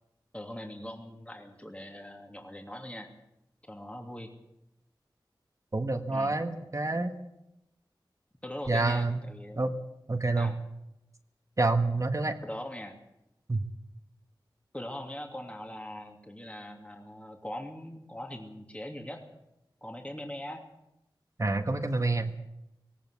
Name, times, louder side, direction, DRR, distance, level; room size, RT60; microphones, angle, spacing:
voice 1, 0.3-3.1 3.6-4.3 6.1-6.4 8.4-9.7 10.4-10.5 12.4-13.0 14.7-19.2 19.8-20.6, left 1 dB, 15° left, 3 dB, 2.8 m, -41 dB
voice 2, 5.7-7.1 8.7-9.2 9.6-9.7 10.1-10.5 11.6-12.4 13.5-13.6 21.4-22.3, right 2 dB, 40° right, 6 dB, 1.5 m, -27 dB
18.5 x 18.5 x 8.3 m, 0.86 s
wide cardioid pair, 70°, 8 cm